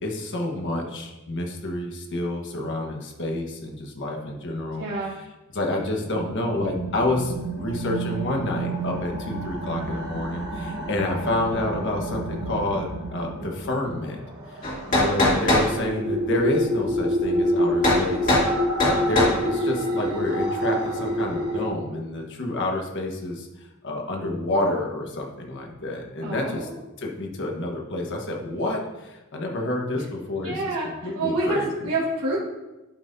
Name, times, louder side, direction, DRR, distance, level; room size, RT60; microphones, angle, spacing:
voice 1, 0.0-5.3 5.5-14.2 14.5-14.6 14.9-18.4 18.8-26.7 27.0-31.9, left 2 dB, 55° left, 1 dB, 1.4 m, -29 dB
voice 2, 4.8-5.1 26.2-26.8 30.4-30.9 31.1-32.4, right 2 dB, 75° right, -7 dB, 1.6 m, -27 dB
sound 1, 6.0-21.7, equal, 50° right, 1.6 m, -28 dB
sound 2, 14.6-15.7 17.8-18.0 18.3-18.5 18.8-19.4, left 1 dB, 40° left, 2.3 m, -20 dB
11.5 x 5.6 x 2.7 m, 1.0 s
head